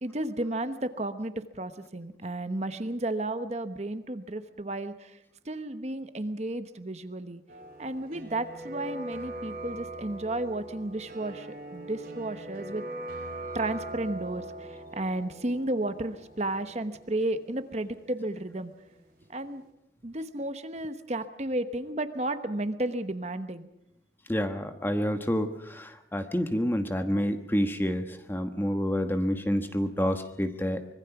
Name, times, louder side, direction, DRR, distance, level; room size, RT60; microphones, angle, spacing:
voice 1, 0.0-5.2 5.4-7.4 7.8-12.8 13.5-18.7 19.3-19.6 20.0-23.7, right 1 dB, 40° right, 10 dB, 1.1 m, -33 dB
sound 1, 7.5-19.2 19.5-19.6, right 2 dB, 55° right, 4.7 m, -42 dB
voice 2, 24.3-31.0, equal, 10° left, 7 dB, 1.2 m, -28 dB
25.0 x 21.5 x 6.0 m, 0.82 s
head